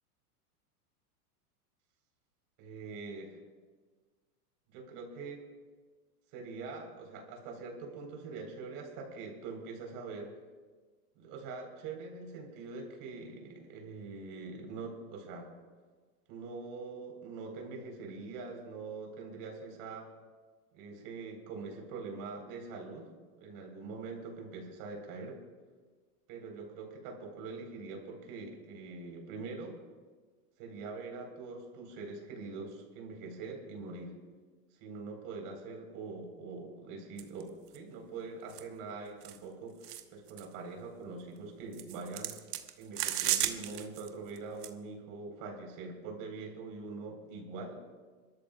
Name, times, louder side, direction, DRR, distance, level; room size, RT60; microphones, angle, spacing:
voice 1, 2.6-3.4 4.7-5.4 6.3-10.3 11.2-15.5 16.3-20.1 20.7-23.1 23.4-25.4 26.3-29.7 30.6-34.1 34.8-39.8 40.1-42.4 42.8-47.8, right 4 dB, 50° right, 2 dB, 4.1 m, -43 dB
sound 1, 37.2-37.4 37.7-37.8 38.5-38.6 39.2-39.4 39.8-40.0 40.3-40.4 41.7-44.1 44.4-44.7, right 12 dB, 80° right, 1.2 m, -34 dB
26.0 x 13.0 x 2.4 m, 1.4 s
hypercardioid pair, 125°, 46 cm